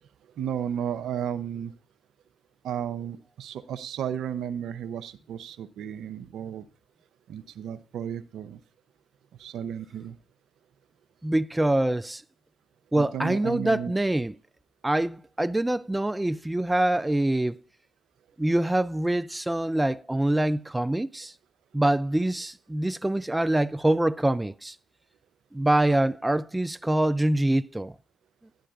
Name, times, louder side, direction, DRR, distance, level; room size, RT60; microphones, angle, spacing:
voice 1, 0.4-1.7 2.6-6.6 7.3-8.6 9.4-10.2 12.9-13.9, right 9 dB, 75° right, 0.6 m, -33 dB
voice 2, 11.2-12.2 12.9-14.3 14.8-17.6 18.4-21.3 21.7-24.8 25.5-28.0, right 1 dB, 15° right, 0.3 m, -25 dB
11.0 x 10.5 x 2.4 m
supercardioid pair, 55°, 0 cm